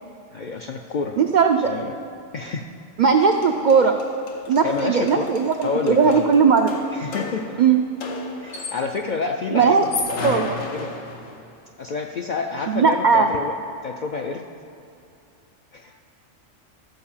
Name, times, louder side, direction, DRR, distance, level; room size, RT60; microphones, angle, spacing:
voice 1, 0.3-1.2 1.6-1.9 2.3-2.7 4.6-5.3 5.6-6.3 6.9-7.6 8.4-10.9 11.8-13.6 13.8-14.5 15.7-16.0, left 4 dB, 65° left, 3 dB, 0.4 m, -28 dB
voice 2, 1.2-1.7 3.0-3.9 4.5-6.7 7.6-7.8 9.5-9.9 10.2-10.5 12.7-13.3, right 5 dB, 70° right, 4 dB, 0.4 m, -18 dB
sound 1, 3.1-3.2 3.4-9.1 9.7-11.5, left 3 dB, 85° left, 1.3 m, -34 dB
13.0 x 4.7 x 7.1 m, 2.5 s
omnidirectional pair, 1.3 m